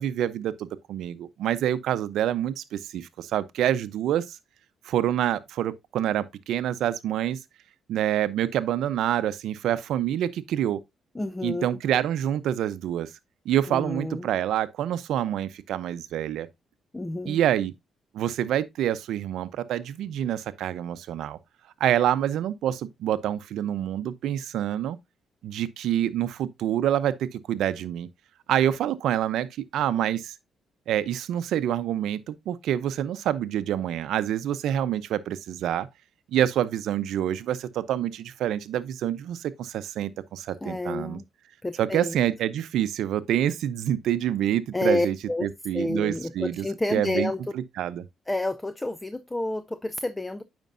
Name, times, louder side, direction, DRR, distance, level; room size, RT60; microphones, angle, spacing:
voice 1, 0.0-4.4 4.8-7.4 7.9-10.8 11.4-13.1 13.4-16.5 17.3-17.7 18.1-21.4 21.8-25.0 25.4-28.1 28.5-30.3 30.9-35.9 36.3-41.2 41.8-46.6 46.9-48.0, right 11 dB, 80° right, 0.6 m, -27 dB
voice 2, 11.2-11.8 13.7-14.3 16.9-17.4 40.6-41.2 41.6-42.2 44.7-45.5 45.7-47.4 48.3-50.4, left 2 dB, 15° left, 0.5 m, -29 dB
9.1 x 5.2 x 2.6 m
cardioid pair, 90°, 0 cm